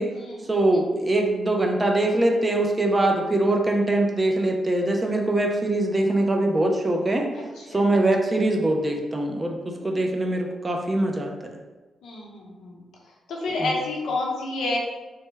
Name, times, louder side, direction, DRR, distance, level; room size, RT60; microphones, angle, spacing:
voice 1, 0.5-7.3 7.7-11.3 13.6-13.7, right 2 dB, 20° right, 2 dB, 0.4 m, -23 dB
voice 2, 7.3-7.7 9.8-10.0 12.0-12.8 13.3-14.8, left 2 dB, 85° left, -2 dB, 0.7 m, -29 dB
3.3 x 2.1 x 3.2 m, 1.2 s
cardioid pair, 135°, 0 cm